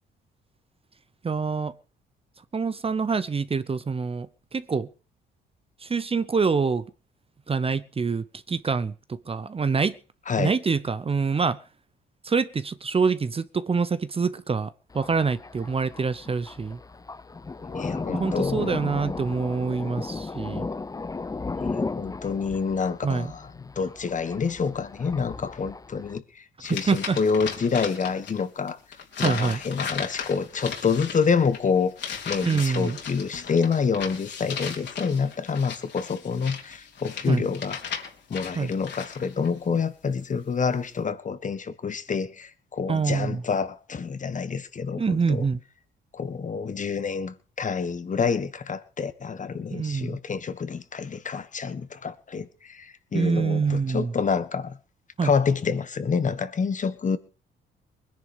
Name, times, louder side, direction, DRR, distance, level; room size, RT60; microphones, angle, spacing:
voice 1, 1.2-1.7 2.4-4.9 5.8-6.9 7.5-10.0 10.4-11.6 12.2-16.8 18.1-20.7 23.0-23.3 26.7-27.2 29.2-29.6 32.4-33.0 37.3-37.5 38.5-38.7 42.9-43.4 45.0-45.6 49.7-50.2 53.1-54.1 55.2-55.3, right 5 dB, 30° right, 0.9 m, -26 dB
Thunder, 14.9-26.2, left 3 dB, 20° left, 0.7 m, -35 dB
voice 2, 17.6-18.8 21.5-23.4 23.7-28.8 29.2-31.9 32.2-37.8 38.3-45.4 46.1-54.8 55.2-57.2, left 5 dB, 40° left, 1.5 m, -27 dB
sound 1, 26.6-28.4 28.7-39.5, left 6 dB, 65° left, 3.8 m, -36 dB
20.5 x 10.5 x 5.2 m
cardioid pair, 90°, 20 cm